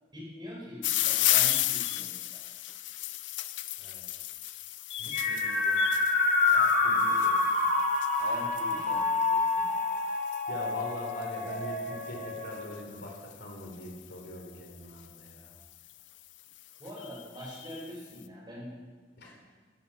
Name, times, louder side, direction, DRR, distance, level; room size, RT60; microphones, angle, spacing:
voice 1, 0.1-2.4 6.8-7.2 8.2-9.6 16.8-18.7 19.2-19.4, equal, 25° right, -4 dB, 5.1 m, -44 dB
sound 1, 0.8-14.0 14.9-15.3 15.9-16.0 16.2-16.3 16.6-17.9, left 15 dB, 80° left, 0.6 m, -34 dB
voice 2, 5.0-5.8 6.5-7.7 8.2-8.4 9.6-10.2 10.5-15.6 19.2-19.3, left 1 dB, 65° left, 0 dB, 3.8 m, -43 dB
sound 2, 5.1-12.7, left 3 dB, 40° left, 3.4 m, -27 dB
14.0 x 13.5 x 5.6 m, 1.4 s
head